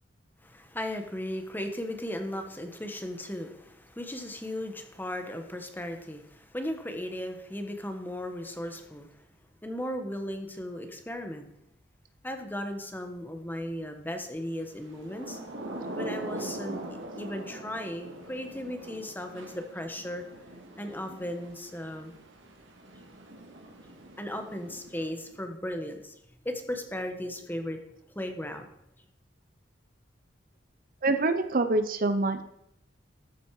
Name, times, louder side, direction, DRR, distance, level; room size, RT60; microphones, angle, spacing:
voice 1, 0.4-9.2 9.6-11.5 12.2-15.4 15.9-20.2 20.8-22.1 24.2-26.1 26.4-27.8 28.1-28.7, left 1 dB, 10° left, 6 dB, 1.2 m, -36 dB
Thunder / Rain, 14.8-25.4, right 1 dB, 85° right, 2.1 m, -42 dB
voice 2, 31.0-32.4, right 2 dB, 50° right, 9 dB, 0.7 m, -25 dB
13.5 x 8.2 x 4.8 m, 0.78 s
head